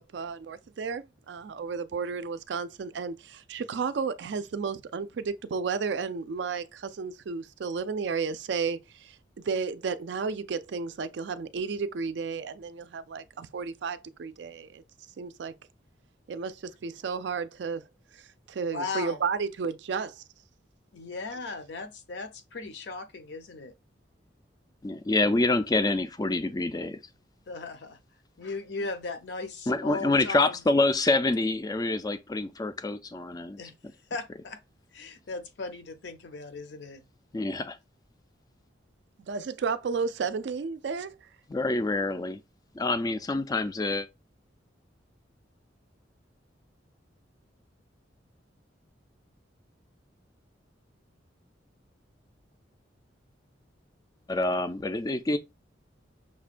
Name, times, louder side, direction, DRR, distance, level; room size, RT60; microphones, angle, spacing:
voice 1, 0.0-9.2 9.4-14.8 15.2-15.5 16.3-17.9 18.5-20.2 39.2-41.2, right 5 dB, 65° right, 0.4 m, -32 dB
voice 2, 18.7-19.2 20.9-23.7 27.5-28.0 28.4-30.6 33.6-34.6 34.9-37.0, left 3 dB, 65° left, 0.6 m, -37 dB
voice 3, 24.8-27.0 29.7-33.6 37.3-37.8 41.5-42.4 42.7-44.1 54.3-55.4, left 2 dB, 20° left, 0.3 m, -26 dB
6.0 x 2.2 x 2.4 m
head